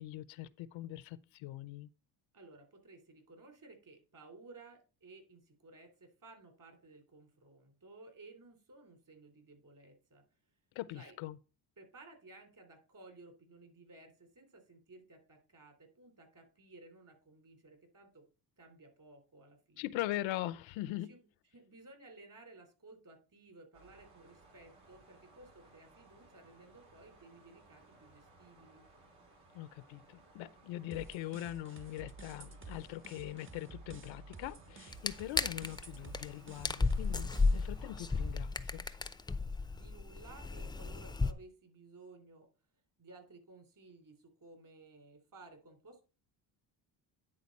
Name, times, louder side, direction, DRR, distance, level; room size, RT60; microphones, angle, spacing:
voice 1, 0.0-1.9 10.7-11.4 19.8-21.1 29.5-38.9, left 15 dB, 75° left, 0.7 m, -42 dB
voice 2, 2.3-10.2 10.9-11.2 11.8-18.3 18.6-20.0 21.1-21.3 21.5-28.9 39.7-42.5 43.0-46.0, right 2 dB, 45° right, 3.3 m, -57 dB
sound 1, 23.7-38.4, right 2 dB, 70° right, 4.2 m, -62 dB
sound 2, 30.9-37.8, right 3 dB, 25° right, 1.0 m, -52 dB
sound 3, 34.9-35.8 36.1-36.3 36.6-41.3, left 3 dB, 10° left, 0.6 m, -33 dB
9.9 x 3.9 x 5.3 m
supercardioid pair, 70°, 47 cm